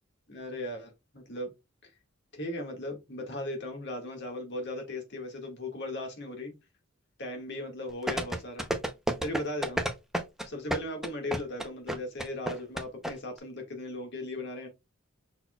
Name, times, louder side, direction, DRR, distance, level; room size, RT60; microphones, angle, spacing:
voice 1, 0.3-1.5 1.8-1.9 2.3-6.6 7.2-8.7 9.2-9.8 10.4-14.7, left 1 dB, 55° left, 1.7 m, -37 dB
sound 1, 8.1-13.1 13.4-13.5, right 1 dB, ahead, 0.6 m, -30 dB
5.8 x 4.2 x 2.2 m
head